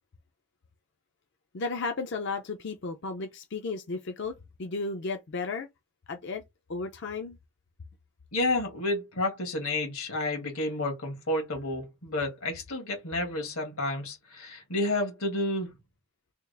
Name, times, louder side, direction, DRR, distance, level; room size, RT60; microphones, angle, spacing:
voice 1, 1.5-4.3 4.6-5.7 6.1-6.4 6.7-7.4, left 4 dB, 55° left, 0.5 m, -34 dB
voice 2, 8.3-15.7, left 2 dB, 80° left, 1.7 m, -30 dB
3.5 x 2.4 x 3.3 m
head